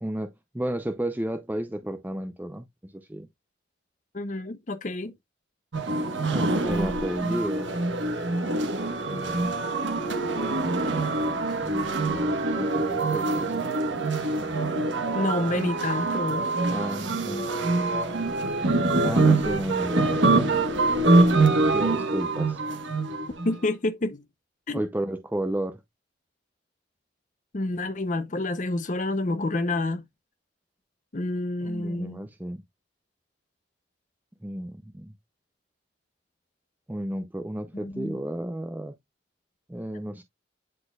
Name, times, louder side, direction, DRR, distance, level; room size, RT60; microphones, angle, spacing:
voice 1, 0.0-3.3 6.3-7.7 9.1-9.6 11.6-12.4 12.7-13.7 16.7-17.5 19.0-20.5 21.7-22.6 24.7-25.8 31.6-32.6 34.4-35.1 36.9-38.9 39.7-40.2, right 1 dB, 10° right, 0.5 m, -32 dB
voice 2, 4.1-5.1 7.2-7.4 12.6-12.9 15.1-16.5 23.4-24.2 24.7-24.8 27.5-30.0 31.1-32.2 37.8-38.2, left 2 dB, 40° left, 0.7 m, -29 dB
sound 1, 5.7-23.6, right 2 dB, 75° right, 1.3 m, -25 dB
9.7 x 4.3 x 2.3 m
head